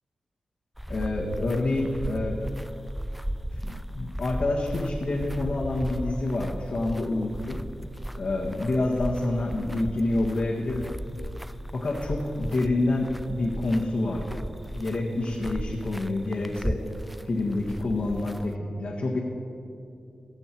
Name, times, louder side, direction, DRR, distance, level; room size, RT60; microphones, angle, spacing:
sound 1, 0.8-18.5, equal, ahead, 0.4 m, -36 dB
voice 1, 0.9-2.4 3.6-7.6 8.2-10.9 11.7-14.4 14.7-16.8 17.3-18.5 18.8-19.2, left 2 dB, 60° left, -4 dB, 1.7 m, -27 dB
23.0 x 7.9 x 4.6 m, 2.6 s
wide cardioid pair, 85°, 2 cm